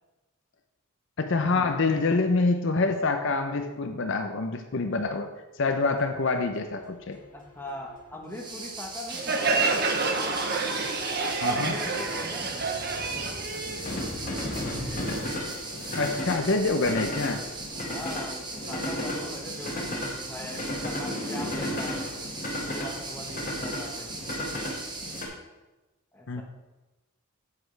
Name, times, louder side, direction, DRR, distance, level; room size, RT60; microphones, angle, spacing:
voice 1, 1.2-5.3 5.6-7.2 11.4-11.8 15.9-17.4 26.3-26.4, left 3 dB, 60° left, 6 dB, 0.6 m, -26 dB
sound 1, 5.8-25.3, left 1 dB, 40° left, 1.7 m, -35 dB
voice 2, 7.3-9.7 11.2-12.8 17.7-22.1 22.7-24.1 26.1-26.4, left 1 dB, 10° left, 0 dB, 1.1 m, -41 dB
sound 2, 8.3-25.2, right 3 dB, 20° right, 0.9 m, -39 dB
Crowd, 9.1-14.5, right 4 dB, 45° right, 0.8 m, -28 dB
9.3 x 8.5 x 3.3 m, 1.1 s
head